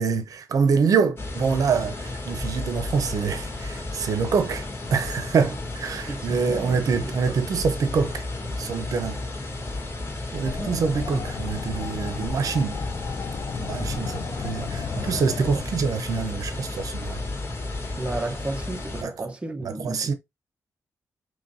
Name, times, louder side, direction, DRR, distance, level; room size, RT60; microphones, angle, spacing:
voice 1, 0.0-8.2 8.6-9.2 10.3-12.8 13.6-17.2 19.0-19.3 19.6-20.1, right 5 dB, 70° right, 0.7 m, -25 dB
sound 1, 1.2-19.0, left 2 dB, 40° left, 2.0 m, -33 dB
voice 2, 6.1-7.4 10.6-10.8 17.9-20.1, right 2 dB, 20° right, 0.8 m, -33 dB
sound 2, 10.4-15.6, left 6 dB, 55° left, 0.4 m, -35 dB
5.6 x 3.1 x 2.6 m
cardioid pair, 100°, 6 cm